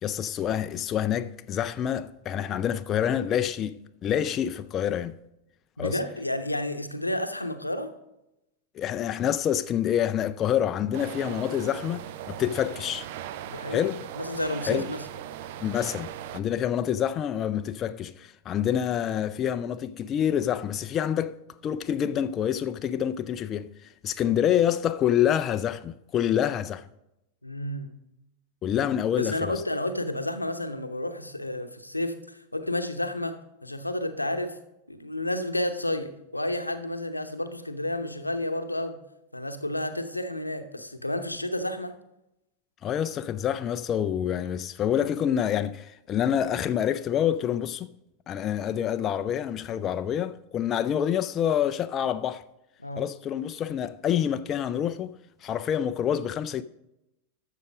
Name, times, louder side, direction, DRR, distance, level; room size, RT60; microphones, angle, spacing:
voice 1, 0.0-5.2 5.8-6.0 8.7-13.1 13.7-14.0 14.7-14.9 15.6-21.4 21.6-26.9 28.6-29.6 42.8-47.9 48.3-52.4 53.0-55.1 55.4-56.6, left 9 dB, 30° left, 0.4 m, -27 dB
voice 2, 5.8-7.9 13.4-13.8 14.2-15.0 27.4-27.9 29.2-34.6 34.9-39.0 39.3-41.9 52.8-53.0, left 1 dB, 85° left, 0.8 m, -31 dB
sound 1, 10.9-16.4, right 11 dB, 50° right, 0.5 m, -39 dB
12.0 x 6.7 x 5.1 m
figure-of-eight pair, 90°, 0 cm